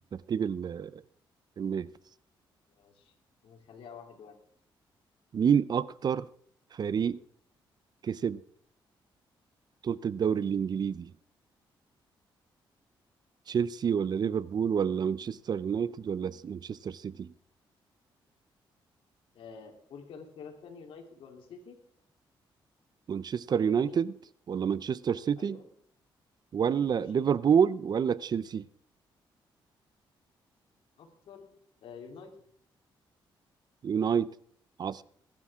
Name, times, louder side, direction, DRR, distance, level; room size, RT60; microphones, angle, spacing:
voice 1, 0.1-1.0 1.6-1.9 5.3-6.3 6.7-7.2 8.0-8.4 9.8-11.1 13.5-17.3 23.1-24.1 24.5-25.6 26.5-28.7 33.8-34.3 34.8-35.0, right 7 dB, 50° right, 0.6 m, -28 dB
voice 2, 2.7-3.1 3.4-4.4 14.3-14.4 19.3-21.8 23.6-24.0 25.4-25.7 26.9-27.3 31.0-31.5 31.8-32.3, left 5 dB, 80° left, 3.4 m, -48 dB
21.5 x 11.5 x 3.7 m
cardioid pair, 100°, 9 cm